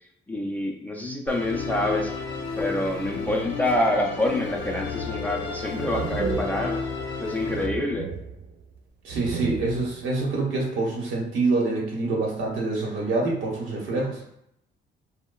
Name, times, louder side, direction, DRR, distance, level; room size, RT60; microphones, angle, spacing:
voice 1, 0.3-2.1 2.6-6.8 7.2-8.1, left 1 dB, 10° left, 0 dB, 0.4 m, -27 dB
Musical instrument, 1.3-7.7, left 4 dB, 65° left, 0.5 m, -32 dB
sound 1, 4.9-5.4 5.7-7.2 7.4-8.8 9.1-10.1, right 5 dB, 65° right, 0.4 m, -33 dB
voice 2, 9.0-14.2, right 3 dB, 80° right, -3 dB, 1.0 m, -26 dB
2.8 x 2.1 x 2.2 m, 0.77 s
cardioid pair, 90°, 20 cm